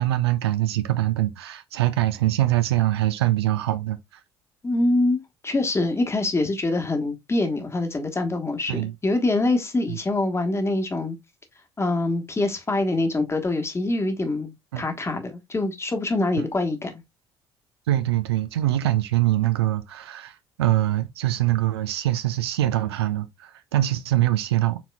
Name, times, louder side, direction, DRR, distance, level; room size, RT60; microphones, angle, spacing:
voice 1, 0.0-4.0 8.7-8.9 9.9-10.0 14.7-14.8 16.4-16.5 17.9-24.8, right 14 dB, 75° right, 0.4 m, -23 dB
voice 2, 4.6-11.2 11.8-17.0, left 2 dB, 20° left, 1.2 m, -25 dB
4.3 x 4.2 x 2.2 m
figure-of-eight pair, 50°, 14 cm